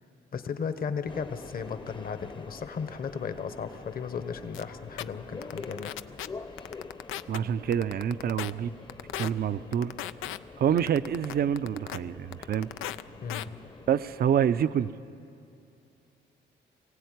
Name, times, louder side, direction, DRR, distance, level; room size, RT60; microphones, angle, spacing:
voice 1, 0.3-6.0 13.2-13.5, left 6 dB, 50° left, 10 dB, 1.3 m, -35 dB
Subway metro underground, 1.1-14.9, left 4 dB, 25° left, 0.9 m, -46 dB
sound 1, 4.5-4.6 5.0-5.1 5.4-6.3 6.6-7.4 7.7-8.5 8.9-9.3 9.7-10.4 10.8-12.0 12.3-13.0 13.3-13.4, left 13 dB, 90° left, 0.5 m, -35 dB
voice 2, 7.3-8.7 9.2-9.9 10.6-12.7 13.9-14.9, right 9 dB, 50° right, 13 dB, 0.6 m, -27 dB
23.0 x 16.0 x 9.5 m, 2.6 s
cardioid pair, 90°, 20 cm